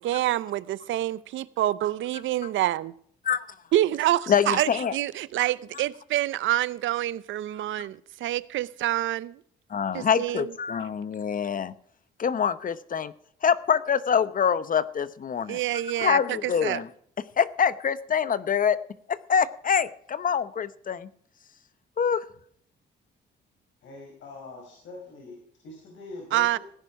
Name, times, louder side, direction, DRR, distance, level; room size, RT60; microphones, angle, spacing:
voice 1, 0.0-2.9 3.7-9.4 9.9-10.5 15.5-16.8 26.3-26.6, right 14 dB, 75° right, 0.7 m, -27 dB
voice 2, 4.3-4.9 9.7-11.7 12.2-13.1 13.4-15.6 16.0-16.9 17.4-18.8 19.1-21.1 22.0-22.2, left 7 dB, 45° left, 0.9 m, -25 dB
voice 3, 23.8-26.6, left 2 dB, 70° left, 5.1 m, -43 dB
17.5 x 10.0 x 4.8 m
cardioid pair, 90°, 20 cm